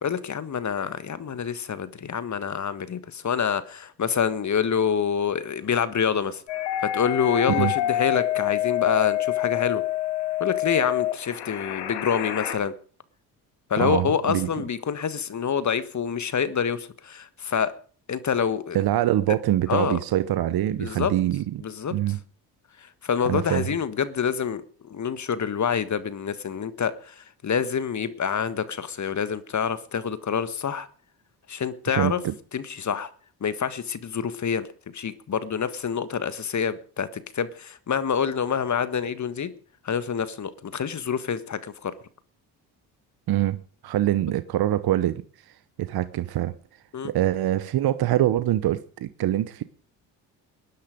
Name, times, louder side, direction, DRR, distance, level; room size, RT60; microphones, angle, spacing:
voice 1, 0.0-6.4 6.8-9.8 10.4-12.7 13.7-17.8 18.1-18.9 19.7-20.0 20.8-21.1 21.6-22.2 22.8-30.9 31.5-32.2 32.5-33.1 33.4-34.7 34.9-39.5 39.8-41.9 46.9-47.1, left 7 dB, 40° left, 14 dB, 1.5 m, -27 dB
sound 1, 6.5-12.5, left 14 dB, 80° left, 2.0 m, -27 dB
voice 2, 13.8-14.5 18.7-21.6 21.9-22.2 23.2-23.7 31.9-32.3 43.3-45.2 45.8-46.5 47.0-49.6, right 13 dB, 60° right, 14 dB, 1.0 m, -24 dB
19.0 x 10.5 x 5.2 m, 0.42 s
supercardioid pair, 60°, 43 cm